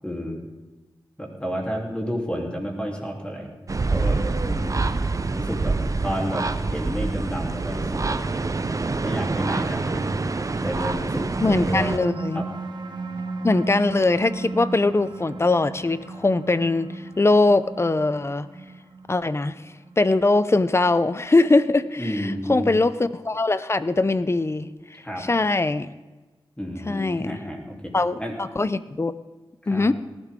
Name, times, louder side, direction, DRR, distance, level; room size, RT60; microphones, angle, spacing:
voice 1, 0.0-0.4 1.2-3.5 3.9-4.9 5.2-5.8 6.0-8.2 9.0-10.2 10.6-12.0 12.3-12.5 22.0-22.7 25.0-25.2 26.6-27.9 28.2-28.4 29.7-29.9, equal, 10° left, -1 dB, 3.4 m, -31 dB
sound 1, 3.7-12.0, right 3 dB, 40° right, 0.7 m, -26 dB
sound 2, 11.0-21.9, right 2 dB, 55° right, 1.6 m, -35 dB
voice 2, 11.4-12.4 13.4-16.9 17.2-18.5 19.1-19.5 20.0-24.7 25.2-25.9 26.9-27.4 27.9-28.2 28.6-29.1 29.7-29.9, left 2 dB, 30° left, 14 dB, 0.7 m, -21 dB
18.5 x 12.0 x 3.8 m, 1.2 s
cardioid pair, 55°, 9 cm